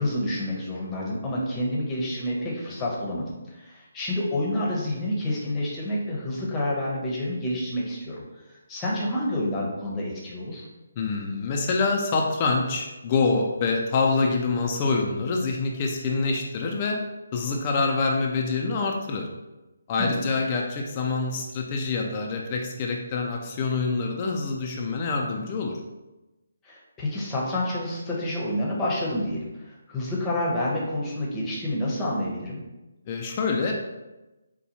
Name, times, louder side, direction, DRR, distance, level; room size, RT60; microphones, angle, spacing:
voice 1, 0.0-10.7 20.0-20.2 26.6-32.6, left 1 dB, 15° left, -4 dB, 0.8 m, -29 dB
voice 2, 11.0-17.0 17.3-19.3 19.9-25.8 33.1-33.7, left 4 dB, 30° left, 0 dB, 0.4 m, -26 dB
4.2 x 2.2 x 2.8 m, 1.1 s
figure-of-eight pair, 150°, 0 cm